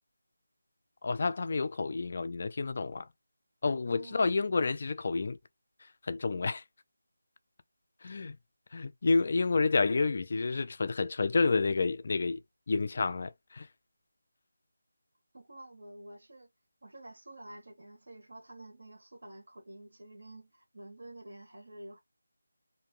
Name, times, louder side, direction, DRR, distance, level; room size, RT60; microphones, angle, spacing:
voice 1, 1.0-3.1 3.6-5.4 5.8-6.6 8.0-8.4 8.7-12.4 12.7-13.7, left 4 dB, 40° left, 0.3 m, -29 dB
voice 2, 3.9-4.3 15.3-16.5 16.8-22.0, right 1 dB, 70° right, 1.1 m, -49 dB
2.6 x 2.1 x 3.1 m
figure-of-eight pair, 175°, 0 cm